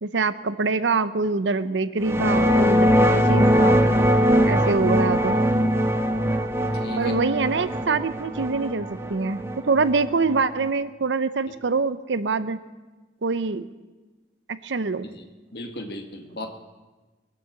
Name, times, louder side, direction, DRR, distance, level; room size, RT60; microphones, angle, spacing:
voice 1, 0.0-3.8 4.4-5.4 7.0-12.6 13.2-13.7 14.5-15.0, right 4 dB, 85° right, 13 dB, 0.7 m, -25 dB
sound 1, 2.0-10.7, equal, 15° right, 0.9 m, -21 dB
voice 2, 4.6-5.1 6.7-7.1 15.1-15.2 15.5-16.5, left 1 dB, 60° left, 4 dB, 1.7 m, -37 dB
23.0 x 7.9 x 7.3 m, 1.2 s
head